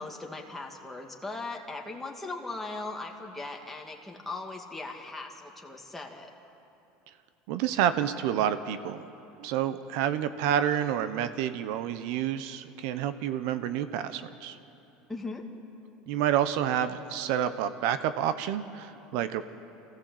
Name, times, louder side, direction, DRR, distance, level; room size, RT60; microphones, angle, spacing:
voice 1, 0.0-6.3 15.1-15.4, left 3 dB, 5° left, 0 dB, 2.1 m, -39 dB
voice 2, 7.5-9.0 9.4-14.6 16.1-19.4, right 10 dB, 70° right, 12 dB, 0.8 m, -29 dB
25.0 x 15.5 x 7.8 m, 2.9 s
supercardioid pair, 130°, 3 cm